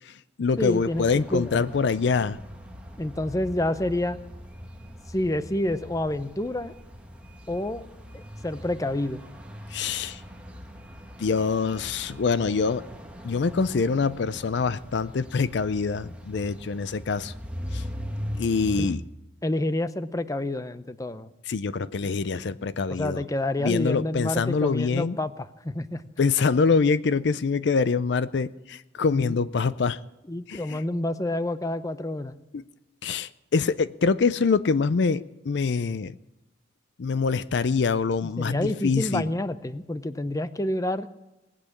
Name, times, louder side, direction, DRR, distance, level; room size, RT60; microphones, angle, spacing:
voice 1, 0.0-2.4 9.7-10.2 11.2-12.8 13.2-17.3 17.7-17.8 18.4-19.0 21.5-23.2 23.6-25.2 26.2-30.0 30.5-30.8 32.5-32.6 33.0-36.1 37.0-39.3, left 4 dB, 65° left, 16 dB, 0.5 m, -25 dB
voice 2, 0.6-1.0 1.3-1.6 3.0-4.2 5.1-6.7 7.5-7.8 8.1-9.2 18.8-18.9 19.4-21.3 22.9-26.0 29.0-29.3 30.3-32.3 38.4-41.1, left 1 dB, 20° left, 13 dB, 0.6 m, -28 dB
sound 1, 0.6-19.0, equal, 5° right, 1.3 m, -41 dB
19.0 x 8.6 x 8.4 m, 0.97 s
head